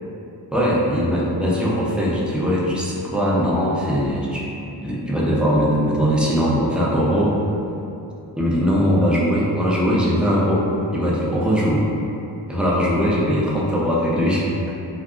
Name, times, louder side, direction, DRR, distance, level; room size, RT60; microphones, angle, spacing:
voice 1, 0.5-4.5 4.8-7.4 8.4-11.8 12.5-14.5, equal, 5° right, -6 dB, 0.4 m, -20 dB
2.7 x 2.3 x 2.3 m, 2.8 s
cardioid pair, 90°, 42 cm